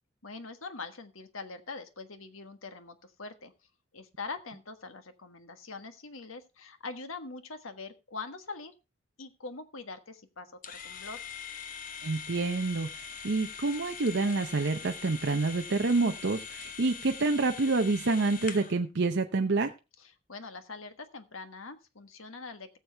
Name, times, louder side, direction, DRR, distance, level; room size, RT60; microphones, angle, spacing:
voice 1, 0.2-3.5 3.9-8.7 9.2-11.2 20.0-22.7, left 3 dB, 75° left, 9 dB, 1.4 m, -43 dB
sound 1, 10.6-18.8, left 6 dB, 40° left, 1.0 m, -42 dB
voice 2, 12.0-19.7, right 3 dB, 55° right, 5 dB, 0.7 m, -28 dB
18.0 x 7.2 x 3.4 m, 0.28 s
head